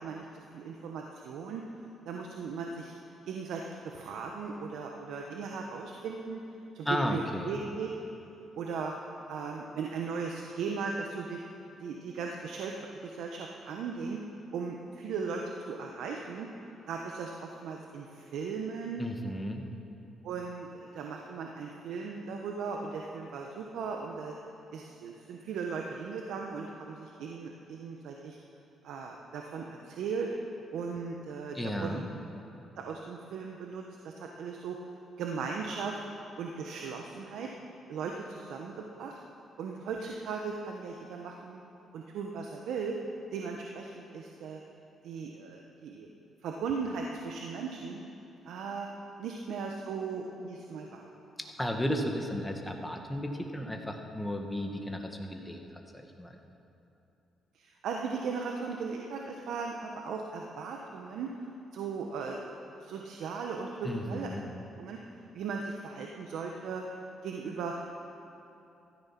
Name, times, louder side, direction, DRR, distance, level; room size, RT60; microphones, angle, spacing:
voice 1, 0.0-1.6 2.1-2.9 3.2-6.4 6.7-7.9 8.6-8.9 9.3-11.4 11.8-14.2 14.5-16.5 16.9-19.1 20.2-24.4 24.7-28.4 28.8-30.3 30.7-32.0 32.8-34.8 35.2-35.9 36.4-37.5 37.9-39.2 39.6-41.6 41.9-43.0 43.3-44.6 45.0-46.1 46.4-48.0 48.4-48.9 49.2-51.0 57.5-61.3 61.7-62.5 62.8-64.3 64.8-65.0 65.3-66.8 67.2-68.0, right 5 dB, 80° right, 1 dB, 1.1 m, -37 dB
voice 2, 6.9-7.6 19.0-19.6 31.5-32.1 51.4-56.4 63.8-64.4, equal, 5° left, 3 dB, 1.7 m, -34 dB
15.5 x 13.5 x 6.0 m, 2.8 s
cardioid pair, 90°, 0 cm